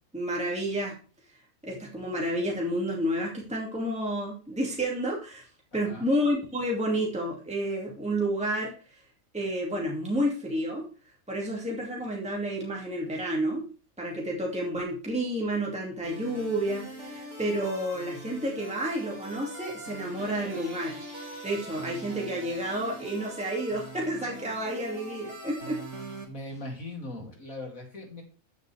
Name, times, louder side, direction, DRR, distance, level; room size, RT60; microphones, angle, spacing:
voice 1, 0.1-1.0 1.6-5.4 5.7-8.7 9.3-10.9 11.3-13.6 14.0-21.0 21.4-25.8, right 1 dB, 5° right, -2 dB, 2.4 m, -30 dB
sound 1, 16.0-26.2, right 1 dB, 55° right, 3.0 m, -42 dB
voice 2, 26.3-28.2, left 1 dB, 75° left, 0 dB, 3.4 m, -39 dB
14.0 x 6.7 x 3.5 m, 0.37 s
omnidirectional pair, 1.4 m